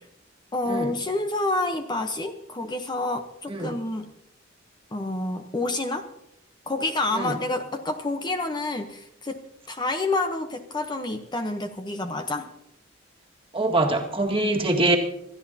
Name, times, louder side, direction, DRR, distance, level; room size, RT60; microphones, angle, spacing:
voice 1, 0.5-4.1 4.9-6.1 6.7-9.4 9.7-12.5, left 2 dB, 20° left, 6 dB, 0.9 m, -28 dB
voice 2, 13.5-15.0, right 2 dB, 30° right, 1 dB, 1.8 m, -23 dB
27.0 x 13.5 x 2.8 m, 0.80 s
head